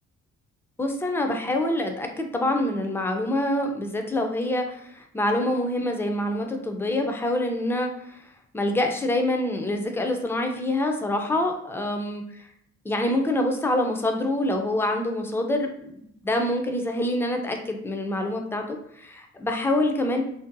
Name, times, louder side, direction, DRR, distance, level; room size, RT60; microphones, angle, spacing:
voice 1, 0.8-8.2 8.5-12.2 12.8-16.0 16.2-20.2, left 1 dB, 10° left, 4 dB, 0.4 m, -26 dB
2.6 x 2.2 x 2.5 m, 0.71 s
cardioid pair, 90°, 30 cm